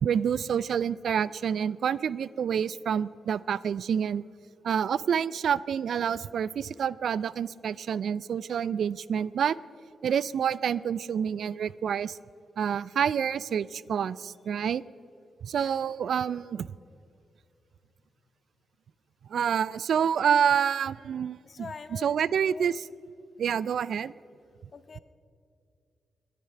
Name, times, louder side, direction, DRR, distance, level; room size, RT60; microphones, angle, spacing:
voice 1, 0.0-4.2 4.6-9.6 10.0-12.2 12.6-14.8 15.4-16.7 19.3-21.4 21.9-22.8 23.4-24.1, right 8 dB, 75° right, 20 dB, 0.3 m, -28 dB
voice 2, 21.4-22.1 22.5-22.7 24.7-25.0, left 5 dB, 55° left, 13 dB, 0.8 m, -44 dB
21.0 x 11.0 x 5.7 m, 2.4 s
supercardioid pair, 45°, 0 cm